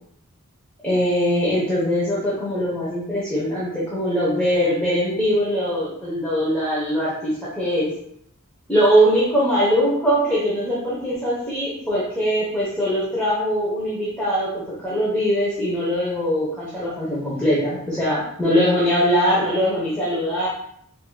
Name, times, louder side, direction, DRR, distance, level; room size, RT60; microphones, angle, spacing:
voice 1, 0.8-7.9 8.7-20.5, equal, 5° left, -9 dB, 0.9 m, -21 dB
5.4 x 2.6 x 2.3 m, 0.70 s
head